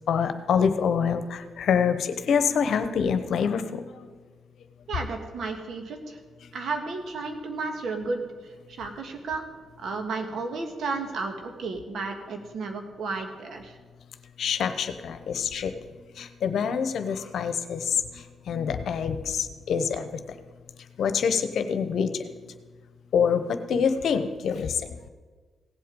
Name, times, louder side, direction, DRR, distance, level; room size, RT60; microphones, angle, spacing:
voice 1, 0.1-4.1 14.4-15.7 16.2-20.1 21.0-22.1 23.1-25.0, left 7 dB, 70° left, 10 dB, 0.9 m, -26 dB
voice 2, 4.9-6.2 6.5-9.4 9.8-13.8, right 3 dB, 70° right, 4 dB, 1.7 m, -33 dB
17.0 x 7.8 x 5.3 m, 1.4 s
supercardioid pair, 60°, 0 cm